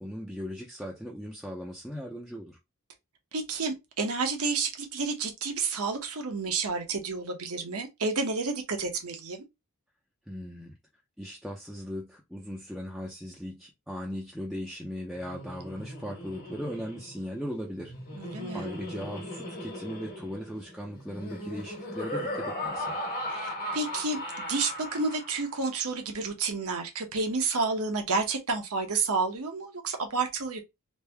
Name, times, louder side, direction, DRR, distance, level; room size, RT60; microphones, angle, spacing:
voice 1, 0.0-2.6 10.3-10.7 11.2-17.9 18.5-22.9, equal, ahead, 0.5 m, -38 dB
voice 2, 3.3-9.4 18.2-18.7 23.3-30.6, right 4 dB, 80° right, 0.9 m, -30 dB
Laughter, 15.2-25.6, left 1 dB, 40° left, 1.3 m, -37 dB
3.3 x 2.6 x 3.4 m
head